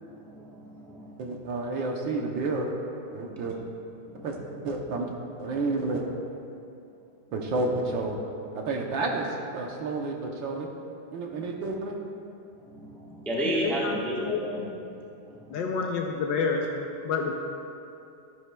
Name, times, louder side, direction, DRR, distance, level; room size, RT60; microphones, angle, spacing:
voice 1, 0.0-1.2 3.3-3.6 4.0-4.3 12.6-14.6 14.9-15.7, right 1 dB, ahead, -5 dB, 0.4 m, -34 dB
voice 2, 1.2-2.7 3.1-3.5 4.2-4.4 4.6-5.1 5.4-6.0 7.3-8.2 8.5-9.3 9.5-10.7 11.1-12.0, right 3 dB, 65° right, 1 dB, 1.4 m, -30 dB
voice 3, 13.4-14.7 15.5-16.7 17.0-17.3, left 5 dB, 70° left, 1 dB, 1.2 m, -29 dB
13.0 x 10.5 x 2.3 m, 2.7 s
omnidirectional pair, 2.4 m